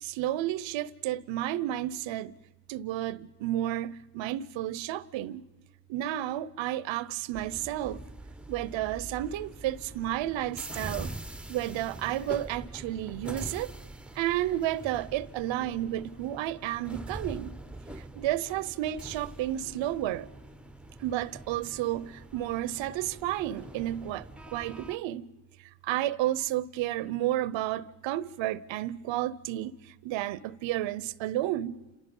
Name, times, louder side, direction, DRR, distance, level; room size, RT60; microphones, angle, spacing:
voice 1, 0.0-2.4 2.7-5.4 5.9-8.0 8.5-11.1 11.5-13.7 14.1-17.6 18.0-20.3 21.0-25.3 25.6-31.8, right 13 dB, 80° right, 0.8 m, -32 dB
sound 1, 7.3-25.0, right 2 dB, ahead, 0.8 m, -44 dB
29.5 x 27.5 x 5.4 m
hypercardioid pair, 45°, 45 cm